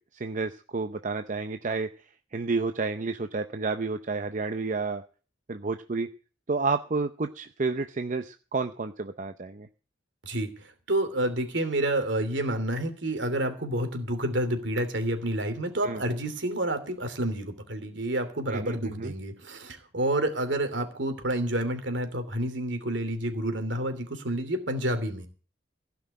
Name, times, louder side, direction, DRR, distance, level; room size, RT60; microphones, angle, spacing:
voice 1, 0.1-1.9 2.3-5.0 5.5-6.1 6.5-9.7 15.8-16.0 18.5-19.1, right 4 dB, 40° right, 9 dB, 0.6 m, -30 dB
voice 2, 10.2-25.3, right 1 dB, 65° right, 8 dB, 2.9 m, -29 dB
16.0 x 6.0 x 9.9 m, 0.39 s
head